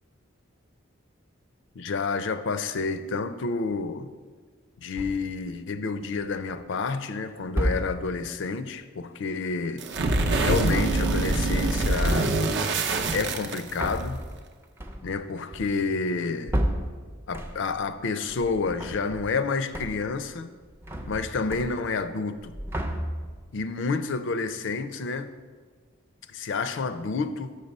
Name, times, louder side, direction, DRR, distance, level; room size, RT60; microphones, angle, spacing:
voice 1, 1.8-4.1 4.8-9.8 10.4-12.4 13.1-14.2 15.0-16.6 17.3-20.5 21.1-22.5 23.5-25.3 26.3-27.6, left 4 dB, 60° left, 0.5 m, -29 dB
sound 1, 5.0-5.4 6.2-6.7 7.5-8.2 10.8-11.7 12.0-12.5 13.3-17.9 18.2-19.4 19.7-20.2 20.5-22.1 22.4-23.5, equal, 10° right, 0.5 m, -33 dB
sound 2, 9.8-14.0, right 2 dB, 60° right, 0.6 m, -24 dB
6.6 x 6.5 x 5.3 m
head